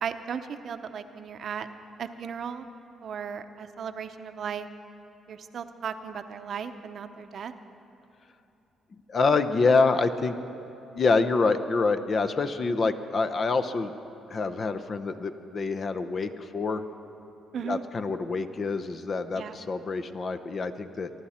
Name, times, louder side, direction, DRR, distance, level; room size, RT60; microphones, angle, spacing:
voice 1, 0.0-1.7 2.0-2.7 3.0-4.7 5.3-7.5 17.5-17.8 19.4-19.5, right 7 dB, 60° right, 9 dB, 0.7 m, -36 dB
voice 2, 9.1-10.3 10.9-13.9 14.3-16.8 17.6-21.1, left 4 dB, 45° left, 10 dB, 0.7 m, -26 dB
23.5 x 11.5 x 4.3 m, 2.8 s
cardioid pair, 90°, 0 cm